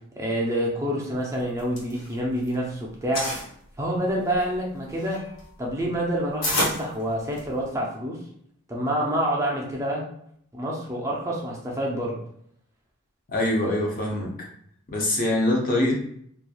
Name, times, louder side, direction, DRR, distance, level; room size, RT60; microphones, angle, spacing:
voice 1, 0.2-3.3 3.8-5.2 5.6-8.2 8.7-10.0 10.5-12.1, equal, 15° right, -3 dB, 0.5 m, -27 dB
sound 1, 1.4-2.6 2.9-3.5 4.1-7.7, left 1 dB, 90° left, 1.1 m, -30 dB
voice 2, 13.3-14.3 14.9-16.1, left 1 dB, 40° left, -1 dB, 0.6 m, -24 dB
3.0 x 2.3 x 2.3 m, 0.67 s
head